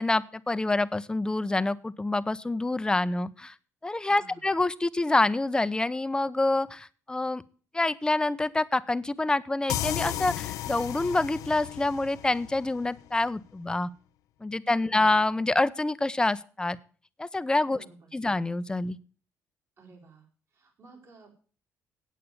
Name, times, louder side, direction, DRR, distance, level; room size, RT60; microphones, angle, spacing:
voice 1, 0.0-3.5 3.8-7.4 7.7-13.9 14.4-16.8 17.2-17.8 18.1-19.0, left 2 dB, 15° left, 15 dB, 0.6 m, -27 dB
voice 2, 4.0-4.5 14.6-15.1 17.6-18.1 19.8-21.3, right 4 dB, 55° right, 1 dB, 4.0 m, -54 dB
sound 1, 9.7-13.2, left 13 dB, 85° left, 0.6 m, -34 dB
8.7 x 8.3 x 8.2 m, 0.42 s
cardioid pair, 90°, 6 cm